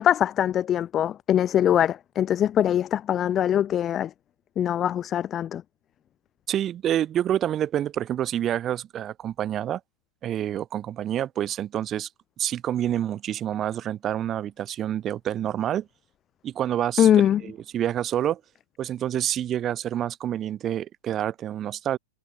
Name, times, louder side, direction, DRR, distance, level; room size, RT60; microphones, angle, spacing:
voice 1, 0.0-4.1 4.6-5.6 17.0-17.4, left 10 dB, 25° left, 0.4 m, -22 dB
voice 2, 6.5-9.8 10.2-12.1 12.4-15.9 16.4-18.4 18.8-22.0, right 11 dB, 25° right, 1.1 m, -28 dB
hypercardioid pair, 110°, 0 cm